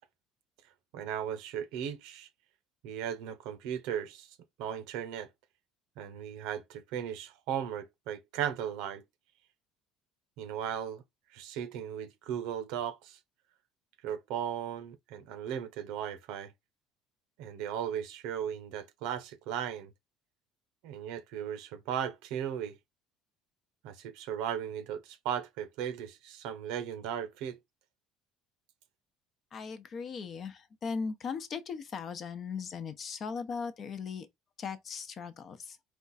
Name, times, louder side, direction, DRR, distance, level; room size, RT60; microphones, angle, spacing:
voice 1, 0.9-2.3 2.8-4.3 4.6-5.3 6.0-9.0 10.4-11.0 11.3-13.2 14.0-16.5 17.4-19.9 20.8-22.7 23.8-27.6, right 9 dB, 80° right, 0.9 m, -36 dB
voice 2, 29.5-34.3 34.6-35.8, left 5 dB, 40° left, 0.8 m, -38 dB
4.4 x 2.4 x 4.0 m
cardioid pair, 130°, 0 cm